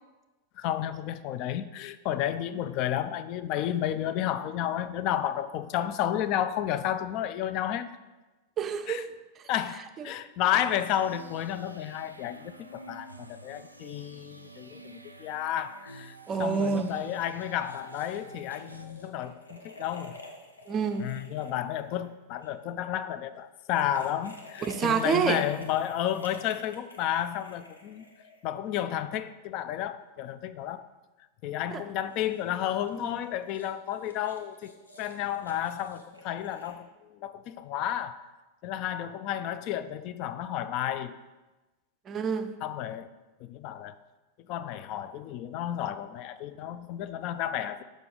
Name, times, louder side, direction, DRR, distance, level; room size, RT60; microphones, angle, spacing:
voice 1, 0.6-8.0 8.9-9.0 9.5-20.2 21.0-28.0 28.4-30.8 31.4-38.3 38.6-41.2 42.6-43.1 43.4-44.0 44.5-47.8, left 11 dB, 40° left, 0.3 m, -32 dB
voice 2, 8.6-9.1 9.4-9.5 10.0-10.2 16.3-16.9 20.7-21.1 24.7-25.5 31.7-31.8 33.0-33.1 42.1-42.5, right 6 dB, 25° right, 0.4 m, -28 dB
sound 1, 10.5-18.9, right 2 dB, 85° right, 0.4 m, -49 dB
sound 2, 17.4-22.5 23.6-28.8 32.0-36.7, left 2 dB, 80° left, 0.7 m, -50 dB
6.7 x 5.0 x 3.8 m
figure-of-eight pair, 90°, 0 cm